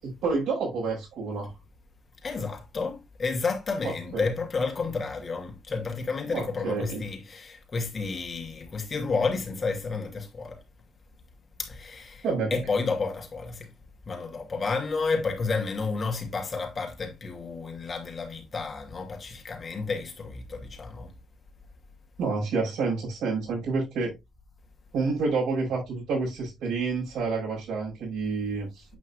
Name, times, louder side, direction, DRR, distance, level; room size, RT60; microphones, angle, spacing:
voice 1, 0.0-1.5 4.1-4.3 6.3-7.1 12.2-12.6 22.2-24.1 24.9-28.8, right 4 dB, 85° right, 5.1 m, -29 dB
voice 2, 2.2-10.6 11.6-12.2 12.5-13.7 14.1-21.1, left 4 dB, 40° left, 2.5 m, -31 dB
8.4 x 6.1 x 2.4 m
cardioid pair, 90°, 0 cm